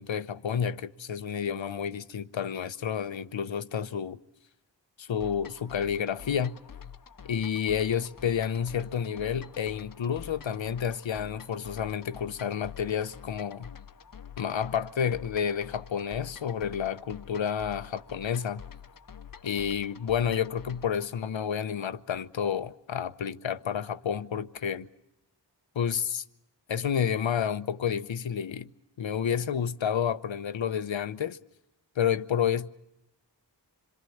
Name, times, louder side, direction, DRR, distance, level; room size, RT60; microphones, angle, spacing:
voice 1, 0.0-4.2 5.0-6.6 7.2-13.7 14.4-18.6 19.4-24.9 25.7-26.2 26.7-28.7 29.0-31.4 32.0-32.7, left 8 dB, 85° left, 0.9 m, -30 dB
sound 1, 5.2-21.1, left 8 dB, 50° left, 0.8 m, -47 dB
26.5 x 23.0 x 7.1 m
wide cardioid pair, 70°, 44 cm